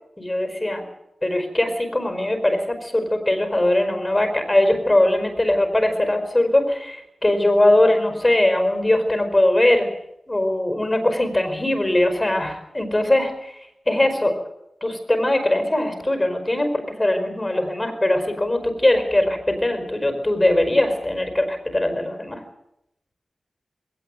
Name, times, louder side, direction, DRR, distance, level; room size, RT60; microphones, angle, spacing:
voice 1, 0.2-0.8 1.2-9.9 10.3-13.5 13.9-14.4 14.8-22.4, left 1 dB, 20° left, 7 dB, 5.0 m, -21 dB
21.0 x 18.0 x 9.5 m, 0.83 s
wide cardioid pair, 70°, 0 cm